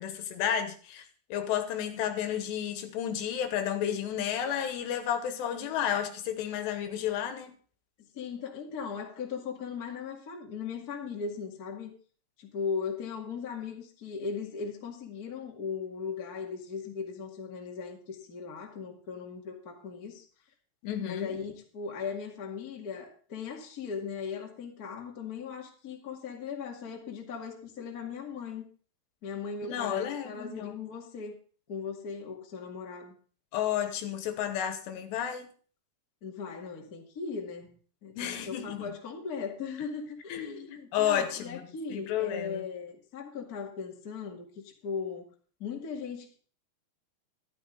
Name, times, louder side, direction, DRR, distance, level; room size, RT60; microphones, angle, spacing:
voice 1, 0.0-7.5 20.8-21.3 29.6-30.8 33.5-35.5 38.2-38.9 40.3-41.6 41.9-42.6, left 9 dB, 80° left, 8 dB, 3.3 m, -32 dB
voice 2, 8.1-11.9 12.4-20.2 21.0-28.6 29.2-31.3 31.7-33.1 36.2-45.3 45.6-46.4, left 5 dB, 35° left, 1 dB, 1.4 m, -38 dB
13.0 x 12.0 x 3.9 m, 0.41 s
omnidirectional pair, 5.1 m